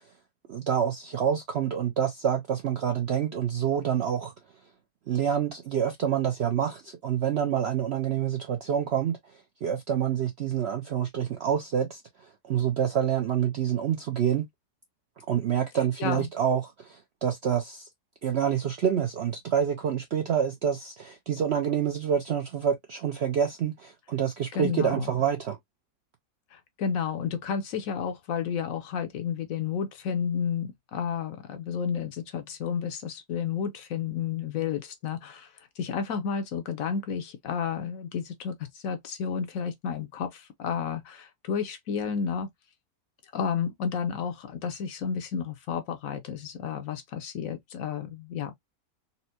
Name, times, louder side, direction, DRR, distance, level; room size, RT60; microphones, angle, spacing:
voice 1, 0.5-4.3 5.1-9.2 9.6-12.0 12.5-14.5 15.3-17.9 18.2-25.6, right 8 dB, 65° right, 0.6 m, -27 dB
voice 2, 24.5-25.1 26.5-42.5 43.3-48.5, left 7 dB, 65° left, 1.0 m, -31 dB
4.2 x 2.1 x 2.7 m
omnidirectional pair, 1.7 m